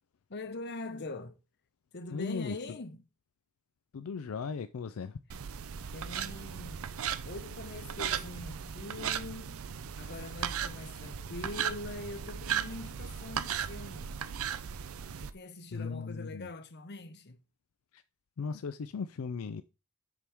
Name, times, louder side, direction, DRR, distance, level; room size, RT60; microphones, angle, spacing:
voice 1, 0.3-1.4 1.9-3.0 5.7-6.8 7.2-9.7 10.0-14.2 15.2-17.4, left 2 dB, 50° left, 0.9 m, -43 dB
voice 2, 2.1-2.6 3.9-5.2 15.1-15.2 15.7-16.5 17.9-18.0 18.4-19.6, left 5 dB, 75° left, 0.4 m, -37 dB
sound 1, 5.3-15.3, right 8 dB, 70° right, 0.5 m, -37 dB
7.1 x 6.1 x 3.5 m
head